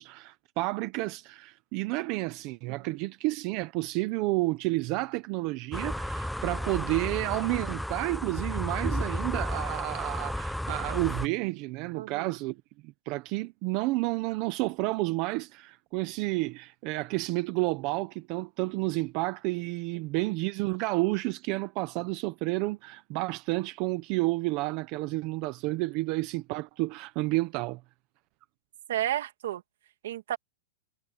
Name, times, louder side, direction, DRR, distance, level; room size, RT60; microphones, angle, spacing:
voice 1, 0.0-27.8, right 21 dB, 35° right, 1.0 m, -30 dB
sound 1, 5.7-11.3, equal, ahead, 0.6 m, -33 dB
voice 2, 12.0-12.3 28.9-29.6 30.0-30.4, right 12 dB, 65° right, 2.4 m, -31 dB
supercardioid pair, 165°, 0 cm